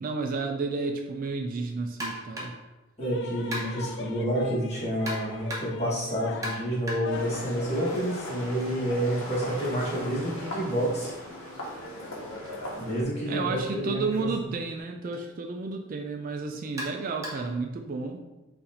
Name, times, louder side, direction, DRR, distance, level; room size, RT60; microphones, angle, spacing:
voice 1, 0.0-2.5 13.3-18.2, right 4 dB, 40° right, 4 dB, 0.3 m, -32 dB
sound 1, 2.0-2.7 3.5-4.0 5.1-5.9 6.4-8.2 8.5-12.4 13.5-13.6 14.1-14.2 15.1-15.3 16.8-17.6, equal, 15° right, 0.8 m, -40 dB
sound 2, 3.0-14.8, left 5 dB, 55° left, 0.4 m, -44 dB
voice 2, 3.0-11.1 12.8-14.3, equal, 30° left, -7 dB, 1.4 m, -29 dB
sound 3, 7.1-13.0, left 1 dB, 75° left, 1.0 m, -38 dB
4.1 x 2.5 x 4.1 m, 1.1 s
head